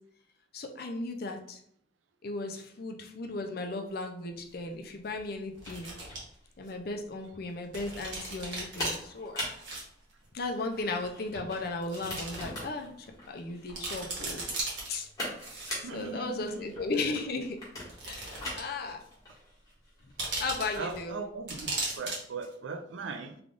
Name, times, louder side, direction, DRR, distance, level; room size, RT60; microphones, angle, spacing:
voice 1, 0.5-1.6 2.2-5.9 6.6-9.4 10.3-14.4 14.9-15.1 15.9-17.6 18.0-19.0 20.4-21.2, left 3 dB, 55° left, 4 dB, 0.5 m, -36 dB
sound 1, 4.0-4.1 5.6-6.2 6.7-6.8 7.7-9.0 9.5-9.8 10.1-10.2 11.1-11.2 11.8-12.4 12.8-12.9 13.4-13.5 13.7-14.9 15.4-16.0 16.9-17.0 17.8-18.8 19.0-19.1 20.2-21.0 21.5-22.2 22.4-22.5, right 2 dB, 70° right, 1.3 m, -37 dB
sound 2, 4.4-21.8, left 1 dB, 20° left, 1.4 m, -43 dB
voice 2, 15.8-16.8 20.8-23.4, right 4 dB, 85° right, 8 dB, 0.4 m, -39 dB
3.4 x 2.4 x 3.6 m, 0.67 s
head